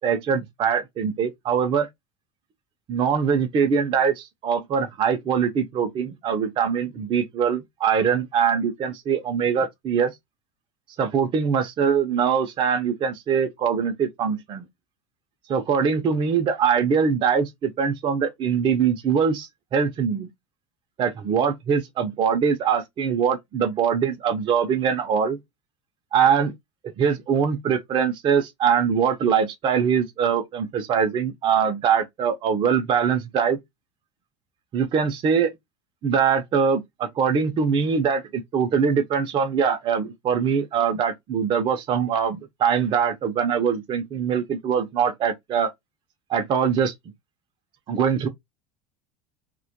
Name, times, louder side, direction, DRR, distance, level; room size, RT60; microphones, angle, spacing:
voice 1, 0.0-1.9 2.9-10.1 11.0-14.7 15.5-20.3 21.0-25.4 26.1-26.5 27.0-33.6 34.7-35.5 36.0-45.7 46.3-46.9 47.9-48.3, right 7 dB, 35° right, 0.4 m, -23 dB
2.1 x 2.1 x 2.7 m
supercardioid pair, 95°, 15 cm